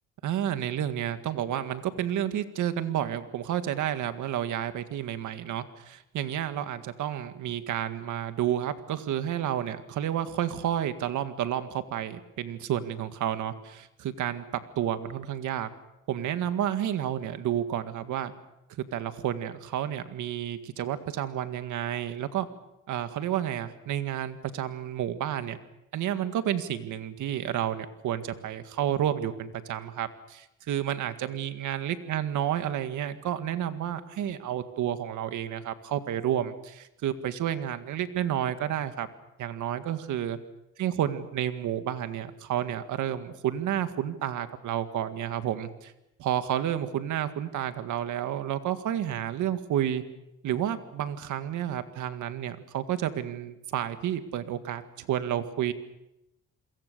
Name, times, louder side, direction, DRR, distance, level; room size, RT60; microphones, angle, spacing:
voice 1, 0.2-15.7 16.1-18.3 18.9-22.5 22.9-25.6 25.9-39.1 39.4-40.4 40.8-45.9 46.2-50.0 50.4-55.7, right 10 dB, 80° right, 10 dB, 1.9 m, -30 dB
28.5 x 22.5 x 6.8 m, 0.88 s
cardioid pair, 90°, 30 cm